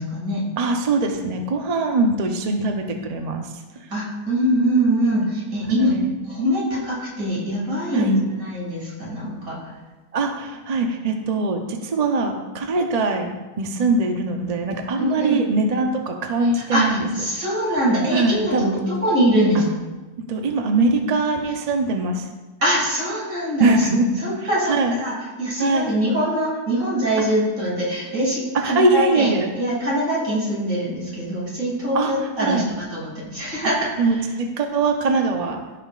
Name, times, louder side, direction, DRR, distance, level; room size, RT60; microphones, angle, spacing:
voice 1, 0.0-0.4 3.9-5.9 6.3-9.6 15.0-15.4 16.4-19.7 22.6-23.9 24.2-34.1, equal, 60° right, -5 dB, 2.9 m, -23 dB
voice 2, 0.6-3.5 5.8-6.1 7.9-8.2 10.1-13.3 13.6-17.1 18.1-18.8 20.3-22.3 23.6-24.1 24.6-24.9 25.6-25.9 28.6-29.5 31.9-32.1 32.4-32.7 34.0-35.6, right 3 dB, 45° right, 3 dB, 0.5 m, -22 dB
14.5 x 5.7 x 2.4 m, 1.2 s
omnidirectional pair, 1.6 m